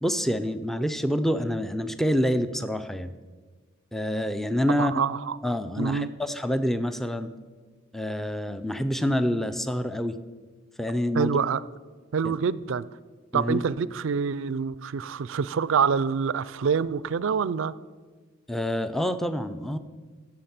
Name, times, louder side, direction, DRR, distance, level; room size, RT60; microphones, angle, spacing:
voice 1, 0.0-3.1 3.9-4.9 5.4-7.3 7.9-10.2 10.8-11.4 12.2-12.3 13.3-13.6 18.5-19.8, equal, ahead, 11 dB, 0.4 m, -27 dB
voice 2, 4.8-5.4 5.8-6.1 11.1-11.6 12.1-12.9 13.3-17.7, right 6 dB, 65° right, 18 dB, 0.4 m, -26 dB
15.0 x 7.1 x 5.9 m, 1.4 s
head